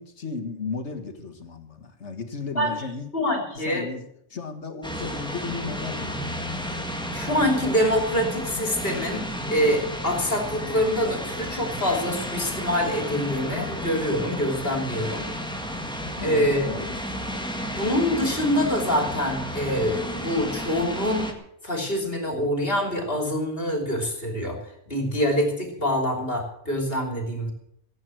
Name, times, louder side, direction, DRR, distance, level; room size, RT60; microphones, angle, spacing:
voice 1, 0.0-3.1 3.6-4.0 4.3-6.2 16.2-17.4, left 4 dB, 85° left, 7 dB, 1.9 m, -35 dB
voice 2, 2.6-2.9 3.1-3.9 7.1-15.3 16.2-16.7 17.6-21.3 21.6-24.6 24.9-27.5, equal, 55° left, 3 dB, 3.5 m, -25 dB
sound 1, 4.8-21.3, equal, 5° left, 1.6 m, -32 dB
16.0 x 8.6 x 7.7 m, 0.73 s
omnidirectional pair, 1.2 m